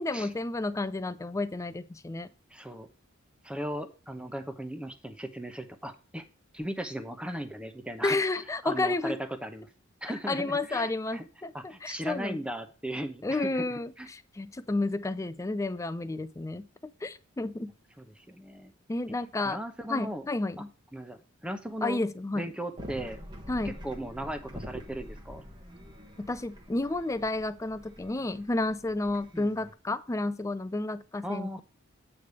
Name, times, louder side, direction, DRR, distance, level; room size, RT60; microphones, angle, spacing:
voice 1, 0.0-2.3 8.0-9.2 10.3-12.4 13.2-16.7 17.0-17.7 18.9-19.6 19.9-20.7 21.8-22.5 23.5-23.8 26.2-31.6, left 2 dB, 15° left, 0.4 m, -31 dB
voice 2, 2.5-2.9 3.4-6.2 6.5-8.2 8.6-9.7 10.0-11.3 11.5-14.1 18.0-18.7 19.4-20.3 20.9-22.0 22.3-23.2 23.6-25.4 29.3-29.5 31.2-31.6, right 1 dB, 5° right, 0.8 m, -37 dB
sound 1, 22.8-29.7, equal, 20° right, 1.1 m, -46 dB
8.5 x 3.3 x 6.6 m
head